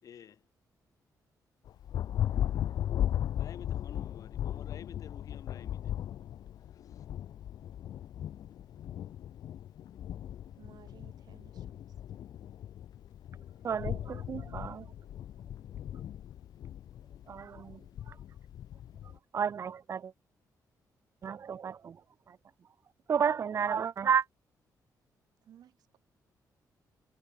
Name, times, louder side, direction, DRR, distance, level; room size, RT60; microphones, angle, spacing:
voice 1, 0.0-0.5 3.4-6.0 6.6-7.0, left 8 dB, 55° left, 6.7 m, -51 dB
Thunder, 1.7-19.2, left 11 dB, 75° left, 2.1 m, -37 dB
voice 2, 10.6-11.8 25.4-26.0, right 10 dB, 70° right, 4.3 m, -58 dB
voice 3, 13.6-14.9 17.3-18.2 19.0-20.1 21.2-22.4 23.1-24.3, right 7 dB, 45° right, 1.6 m, -32 dB
wide cardioid pair, 155°, 7 cm